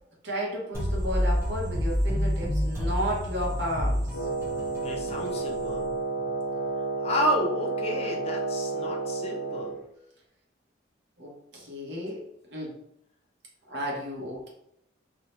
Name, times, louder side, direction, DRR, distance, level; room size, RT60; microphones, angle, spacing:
voice 1, 0.2-4.3 11.2-12.2 12.5-12.8 13.7-14.5, equal, 70° right, -3 dB, 0.9 m, -33 dB
sound 1, 0.7-6.4, equal, 15° right, 0.8 m, -29 dB
Wind instrument woodwind instrument, 4.1-9.8, right 3 dB, 85° left, 0.6 m, -31 dB
voice 2, 4.8-5.8 7.0-9.8, equal, 35° left, 0 dB, 0.4 m, -30 dB
2.7 x 2.1 x 2.9 m, 0.78 s
head